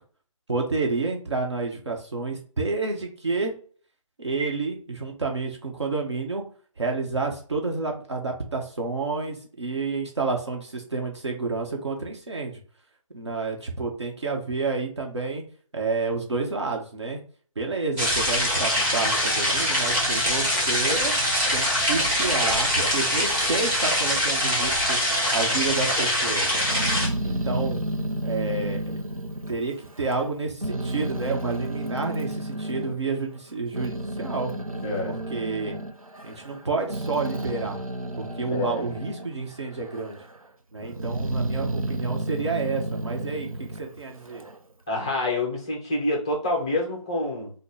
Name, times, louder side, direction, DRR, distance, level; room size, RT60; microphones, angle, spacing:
voice 1, 0.5-3.5 4.2-6.4 6.8-12.6 13.1-15.4 15.7-17.2 17.5-21.1 21.5-25.0 25.3-26.5 27.2-27.8 28.2-29.0 29.5-34.5 35.0-35.7 36.2-37.8 38.2-40.2 40.7-43.5 43.8-44.4, right 3 dB, 55° right, 0 dB, 1.4 m, -29 dB
sound 1, 18.0-27.1, equal, 10° right, 1.1 m, -23 dB
Growling, 26.5-30.3 30.6-32.9 33.5-39.3 39.7-40.4 40.8-44.6, right 1 dB, 85° right, 0.9 m, -31 dB
voice 2, 34.8-35.2 38.5-38.8 44.9-47.5, left 2 dB, 10° left, -1 dB, 0.5 m, -27 dB
6.2 x 2.3 x 3.4 m, 0.43 s
figure-of-eight pair, 155°, 18 cm